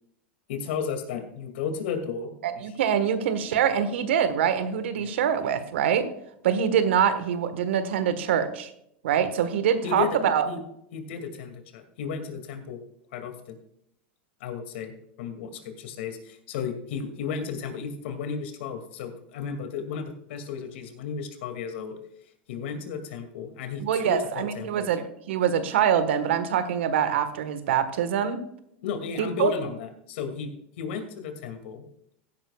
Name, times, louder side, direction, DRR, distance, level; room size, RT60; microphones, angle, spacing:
voice 1, 0.5-2.6 5.0-5.2 9.8-10.2 10.5-10.6 10.9-12.8 13.1-13.6 14.4-22.0 22.5-24.9 28.8-31.8, left 6 dB, 75° left, 6 dB, 2.4 m, -34 dB
voice 2, 2.4-6.1 6.4-8.7 9.0-10.4 23.8-28.4 29.2-29.5, right 8 dB, 80° right, 11 dB, 1.4 m, -24 dB
16.0 x 10.0 x 2.4 m, 0.74 s
supercardioid pair, 125°, 6 cm